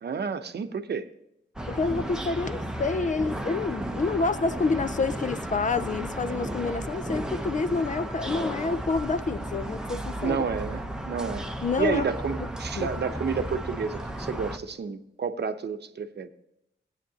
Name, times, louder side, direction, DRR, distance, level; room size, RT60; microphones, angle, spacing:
voice 1, 0.0-1.1 10.2-11.5 11.8-16.3, right 5 dB, 60° right, 0.8 m, -30 dB
sound 1, 1.6-14.6, right 1 dB, 5° right, 0.8 m, -34 dB
voice 2, 1.7-10.4 11.6-12.0 12.7-12.9, left 4 dB, 40° left, 0.5 m, -28 dB
15.5 x 9.2 x 2.8 m
wide cardioid pair, 115°, 20 cm